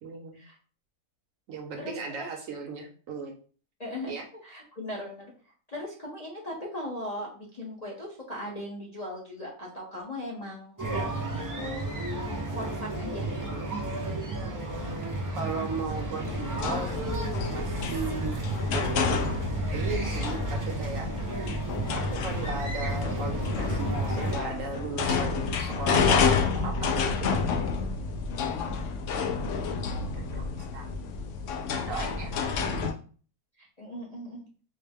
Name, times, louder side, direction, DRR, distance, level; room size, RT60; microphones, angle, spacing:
voice 1, 0.0-0.4 1.5-3.4 4.1-4.3 14.4-18.4 18.7-21.1 21.9-27.4 29.2-30.9 31.9-33.0, right 4 dB, 65° right, 3 dB, 1.0 m, -37 dB
voice 2, 1.8-2.3 3.8-4.1 4.4-5.3 5.7-13.3 28.6-28.8 32.2-32.3 33.6-34.4, left 1 dB, 40° left, -3 dB, 0.6 m, -39 dB
sound 1, 10.8-24.4, right 2 dB, 30° right, 0.3 m, -33 dB
sound 2, 16.3-32.9, left 5 dB, 65° left, 0.8 m, -29 dB
4.2 x 2.0 x 3.5 m, 0.41 s
omnidirectional pair, 1.6 m